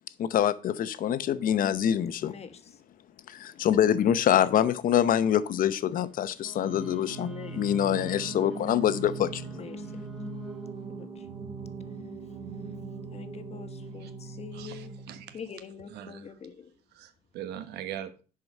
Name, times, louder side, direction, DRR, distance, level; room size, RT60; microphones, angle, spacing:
voice 1, 0.2-2.3 3.3-7.3 7.6-9.5, left 10 dB, 55° left, 0.8 m, -25 dB
voice 2, 2.2-2.8 7.2-8.3 9.5-9.9 11.0-11.3 13.1-15.0 15.3-16.7, left 6 dB, 40° left, 1.2 m, -44 dB
Wind instrument woodwind instrument, 6.4-10.8, equal, ahead, 1.5 m, -50 dB
Singing, 6.5-15.5, right 4 dB, 35° right, 3.1 m, -40 dB
voice 3, 14.5-15.4 15.9-16.2 16.9-18.2, right 10 dB, 80° right, 1.2 m, -41 dB
10.5 x 4.9 x 5.4 m
cardioid pair, 110°, 17 cm